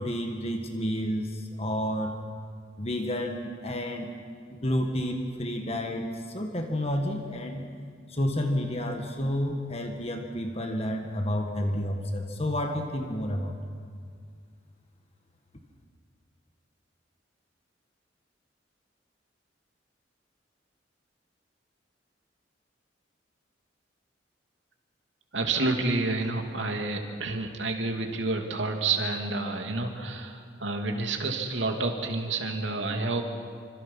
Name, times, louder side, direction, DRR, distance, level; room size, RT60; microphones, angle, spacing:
voice 1, 0.0-2.2 2.8-4.1 4.5-7.6 8.1-13.5, equal, 35° left, 4 dB, 1.7 m, -30 dB
voice 2, 25.3-33.2, right 3 dB, 80° right, 3 dB, 2.7 m, -29 dB
27.0 x 26.0 x 5.6 m, 2.1 s
head